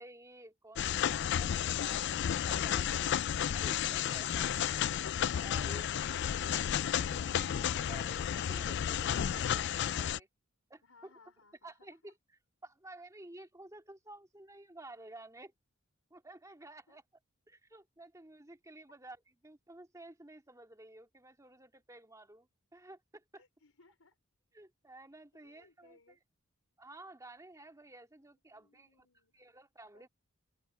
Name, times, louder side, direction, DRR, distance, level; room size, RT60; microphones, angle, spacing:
voice 1, 0.0-3.1 3.5-4.8 5.4-10.3 10.7-11.1 11.6-12.1 12.6-15.5 16.1-17.0 17.5-19.2 19.4-23.4 24.5-26.0 26.8-29.1 29.3-30.1, right 2 dB, 15° right, 2.2 m, -53 dB
sound 1, 0.8-10.2, left 9 dB, 55° left, 0.4 m, -32 dB
voice 2, 10.8-12.1 16.9-17.0 23.4-24.2 25.3-26.2 28.1-29.5 29.9-30.1, left 3 dB, 85° left, 3.9 m, -66 dB
open air
head